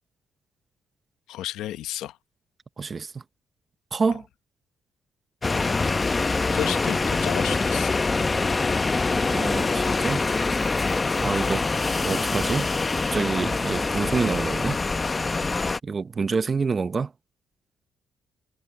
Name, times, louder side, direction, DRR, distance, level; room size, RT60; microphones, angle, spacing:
voice 1, 1.3-2.2 4.1-4.2 6.5-8.0, left 13 dB, 90° left, 1.0 m, -32 dB
voice 2, 2.8-3.1 3.9-4.2 9.1-10.2 11.2-11.7 12.0-12.7 13.1-14.8 15.8-17.1, right 4 dB, 35° right, 0.8 m, -27 dB
sound 1, 5.4-15.8, left 3 dB, 25° left, 0.9 m, -24 dB
cardioid pair, 90°, 0 cm